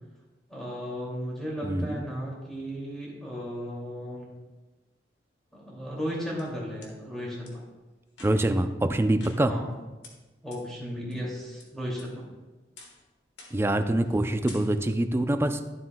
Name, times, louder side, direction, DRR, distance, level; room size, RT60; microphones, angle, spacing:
voice 1, 0.5-4.3 5.5-7.6 9.5-9.7 10.4-12.3, equal, 5° left, -5 dB, 2.5 m, -35 dB
voice 2, 1.6-2.0 8.2-9.5 13.5-15.7, right 1 dB, 15° right, 8 dB, 0.4 m, -25 dB
sound 1, 6.0-6.9 7.4-7.5 8.1-8.6 9.2-9.7 10.0-10.1 10.5-10.6 11.1-11.6 12.0-12.4 12.8-13.0 13.4-13.7 14.0-14.2 14.5-15.0, left 3 dB, 75° left, 1.5 m, -50 dB
12.5 x 7.5 x 2.3 m, 1.2 s
head